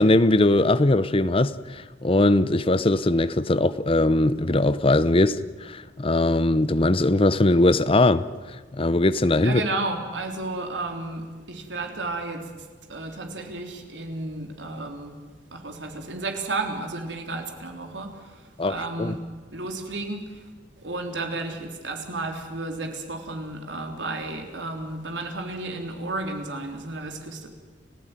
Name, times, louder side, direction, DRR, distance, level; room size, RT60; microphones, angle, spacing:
voice 1, 0.0-8.3 8.7-9.6 18.6-19.2, left 2 dB, 30° left, 0.8 m, -20 dB
voice 2, 9.4-12.5 12.9-15.2 15.5-18.4 18.7-19.2 19.5-20.4 20.8-27.5, right 2 dB, 80° right, 3.6 m, -32 dB
30.0 x 15.5 x 9.2 m
head